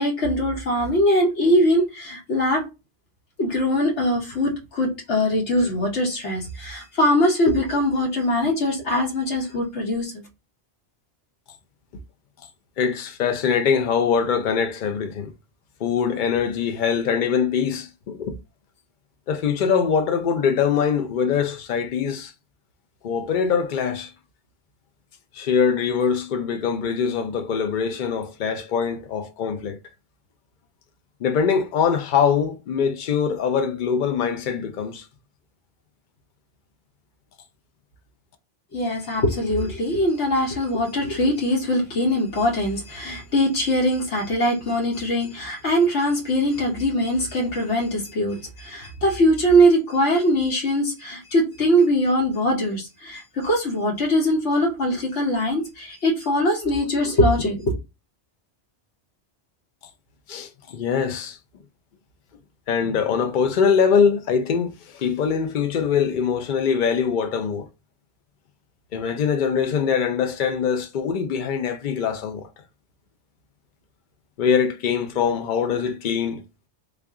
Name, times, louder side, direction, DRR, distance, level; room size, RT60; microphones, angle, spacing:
voice 1, 0.0-2.6 3.4-10.2 38.7-57.7, equal, 75° left, 1.3 m, -22 dB
voice 2, 12.8-15.3 15.8-18.4 19.3-22.3 23.0-24.1 25.3-29.8 31.2-35.0 60.3-61.4 62.7-67.7 68.9-72.5 74.4-76.4, left 6 dB, 50° left, 0.7 m, -23 dB
3.3 x 2.5 x 3.6 m
omnidirectional pair, 1.2 m